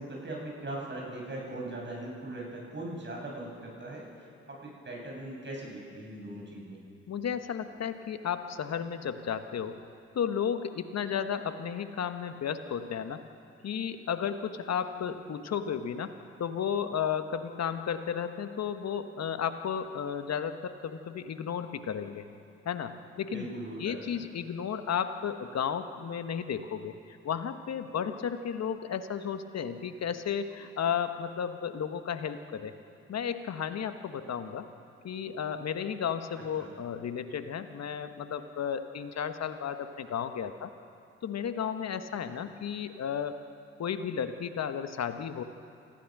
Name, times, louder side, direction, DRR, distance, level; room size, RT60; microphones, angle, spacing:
voice 1, 0.0-4.1 4.5-6.8 23.3-24.2 36.6-36.7, right 1 dB, 35° right, -2 dB, 7.2 m, -40 dB
voice 2, 7.1-9.8 10.1-13.2 13.6-16.1 16.4-22.3 22.6-23.5 23.8-32.8 33.1-34.7 35.0-40.7 41.2-43.4 43.8-45.4, left 8 dB, 55° left, 9 dB, 1.4 m, -33 dB
29.0 x 15.0 x 6.1 m, 2.6 s
hypercardioid pair, 40°, 32 cm